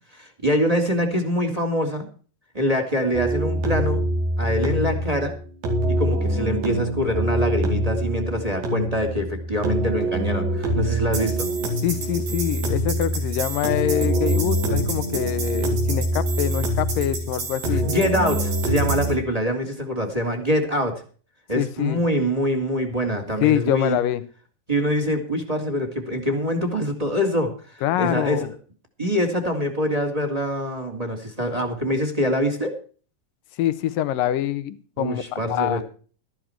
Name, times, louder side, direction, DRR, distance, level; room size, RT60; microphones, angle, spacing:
voice 1, 0.1-2.1 2.5-4.0 4.4-5.3 5.9-11.5 17.7-21.0 21.5-24.0 24.7-27.5 28.0-28.5 29.0-32.7 35.0-35.8, equal, 10° right, 5 dB, 2.2 m, -24 dB
sound 1, 3.1-19.1, right 1 dB, 85° right, 6.3 m, -24 dB
voice 2, 11.8-17.9 21.6-22.0 23.4-24.2 27.8-28.5 33.6-35.2 35.5-35.8, left 12 dB, 75° left, 14 dB, 2.5 m, -25 dB
14.0 x 12.5 x 4.5 m, 0.40 s
omnidirectional pair, 4.3 m